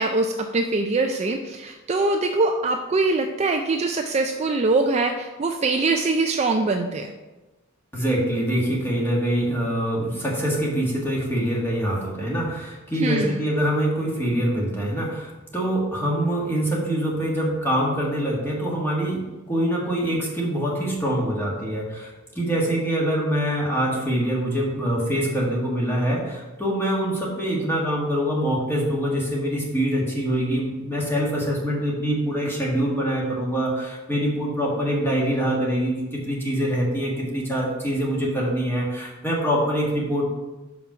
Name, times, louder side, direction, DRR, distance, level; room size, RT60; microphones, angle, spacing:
voice 1, 0.0-7.1 13.0-13.4, right 3 dB, 30° right, 4 dB, 0.4 m, -23 dB
voice 2, 7.9-22.1 22.3-40.2, equal, 10° left, -3 dB, 1.6 m, -24 dB
5.8 x 5.5 x 4.9 m, 1.1 s
head